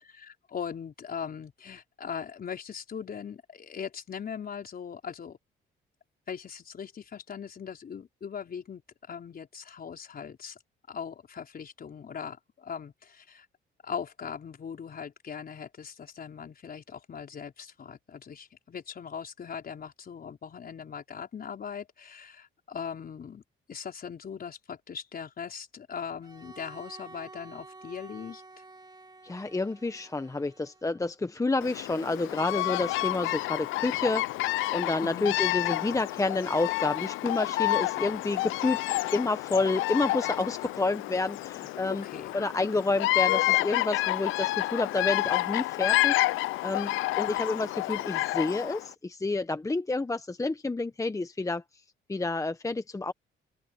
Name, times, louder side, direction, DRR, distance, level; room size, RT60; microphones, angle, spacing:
voice 1, 0.0-5.4 6.3-8.8 9.1-10.6 10.9-13.5 13.8-23.4 23.7-28.4 35.0-35.3 41.9-42.4, left 7 dB, 50° left, 4.7 m, -40 dB
Bowed string instrument, 26.2-31.2, right 3 dB, 20° right, 2.8 m, -50 dB
voice 2, 29.2-34.5 34.7-42.0 42.3-46.2 46.6-51.6 52.1-53.1, left 3 dB, 15° left, 1.0 m, -29 dB
Bird vocalization bird call bird song, 31.6-48.9, left 18 dB, 90° left, 0.5 m, -29 dB
open air
cardioid pair, 90°, 20 cm